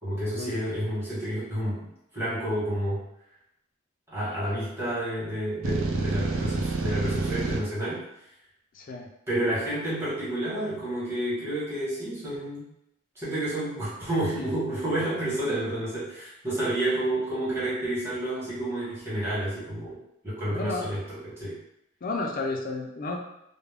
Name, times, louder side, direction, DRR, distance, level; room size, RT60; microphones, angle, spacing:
voice 1, 0.0-1.9 2.1-3.0 4.1-8.0 9.3-12.7 13.1-20.0 20.2-21.6, right 1 dB, 10° right, -10 dB, 1.1 m, -30 dB
sound 1, 5.6-7.6, right 4 dB, 75° right, 0.4 m, -29 dB
voice 2, 8.7-9.1 20.5-20.9 22.0-23.2, left 3 dB, 40° left, 1 dB, 0.3 m, -32 dB
2.3 x 2.0 x 3.3 m, 0.82 s
head